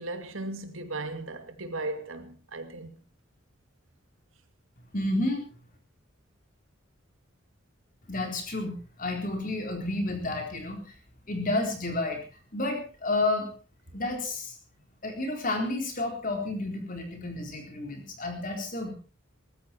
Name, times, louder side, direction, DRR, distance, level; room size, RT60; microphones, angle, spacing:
voice 1, 0.0-3.0, right 2 dB, 85° right, 2.3 m, -36 dB
voice 2, 4.9-5.4 8.1-10.9 11.3-12.2 12.5-13.5 13.9-14.5 15.0-18.9, left 2 dB, 40° left, 4.1 m, -30 dB
19.0 x 14.5 x 4.4 m
head